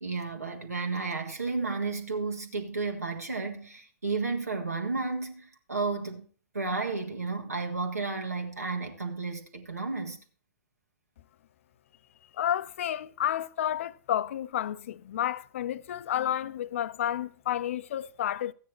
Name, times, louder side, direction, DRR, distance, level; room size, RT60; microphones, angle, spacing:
voice 1, 0.0-6.3 6.5-10.2, right 3 dB, 80° right, 1.8 m, -32 dB
voice 2, 12.4-18.5, left 11 dB, 55° left, 0.6 m, -31 dB
14.0 x 9.2 x 3.1 m
figure-of-eight pair, 105°, 8 cm